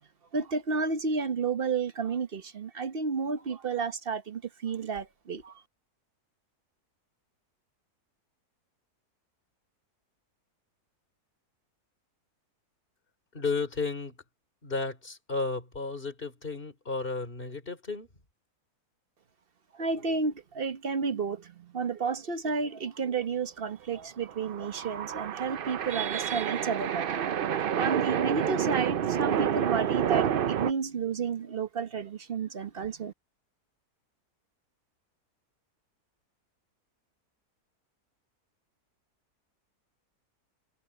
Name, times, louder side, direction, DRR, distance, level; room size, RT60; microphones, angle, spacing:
voice 1, 0.3-5.6 19.7-27.2 27.7-33.1, right 5 dB, 40° right, 1.2 m, -31 dB
voice 2, 13.3-14.2 14.6-18.1, left 3 dB, 35° left, 4.0 m, -33 dB
sound 1, 24.3-30.7, right 9 dB, 65° right, 0.5 m, -29 dB
omnidirectional pair, 1.7 m